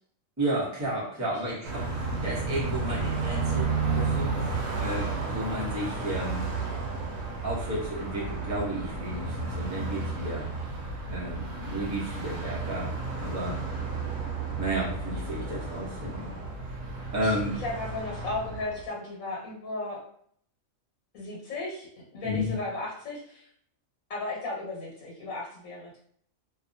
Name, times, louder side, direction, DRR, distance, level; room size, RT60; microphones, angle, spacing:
voice 1, 0.4-1.9 2.2-4.3 4.8-6.5 7.4-10.5 11.1-12.9 13.2-13.6 14.6-16.3 17.1-17.6 22.2-22.5, right 1 dB, 15° right, -6 dB, 0.7 m, -32 dB
Car passing by, 1.6-18.9, right 4 dB, 80° right, 1.0 m, -32 dB
voice 2, 17.2-20.0 21.1-23.5 24.1-26.0, left 2 dB, 90° left, -4 dB, 1.3 m, -35 dB
2.6 x 2.3 x 2.6 m, 0.62 s
omnidirectional pair, 1.4 m